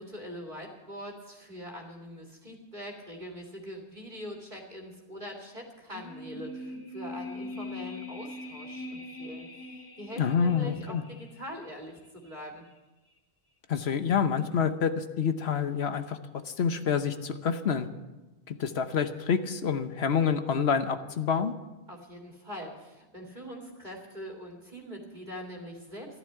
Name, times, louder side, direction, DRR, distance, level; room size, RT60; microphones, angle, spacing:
voice 1, 0.0-12.6 21.9-26.2, equal, 45° right, 1 dB, 2.4 m, -43 dB
sound 1, 5.9-11.2 11.5-11.6, left 2 dB, 85° left, 2.1 m, -41 dB
voice 2, 10.2-11.0 13.7-16.2 16.5-17.9 18.5-21.5, left 6 dB, 70° left, 10 dB, 1.2 m, -27 dB
14.0 x 11.5 x 7.7 m, 1.1 s
omnidirectional pair, 1.1 m